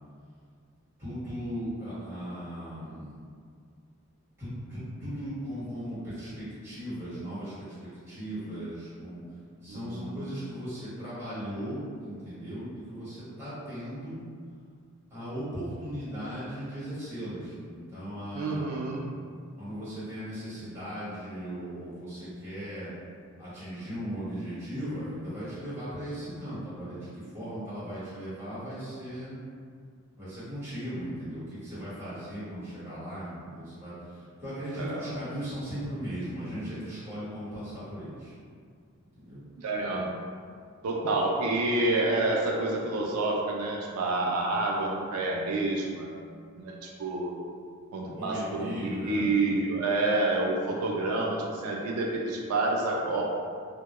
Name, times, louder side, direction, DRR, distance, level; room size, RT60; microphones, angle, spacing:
voice 1, 1.0-3.2 4.4-9.2 9.6-14.3 15.1-18.8 19.6-22.9 23.4-29.4 30.2-38.3 39.2-39.4 48.1-49.2, equal, 10° right, -13 dB, 1.1 m, -37 dB
voice 2, 9.7-10.2 18.3-19.1 34.8-35.1 39.6-40.1 40.8-46.1 46.6-47.4 47.9-53.2, right 2 dB, 85° right, -2 dB, 0.3 m, -28 dB
2.1 x 2.1 x 2.9 m, 2.2 s
head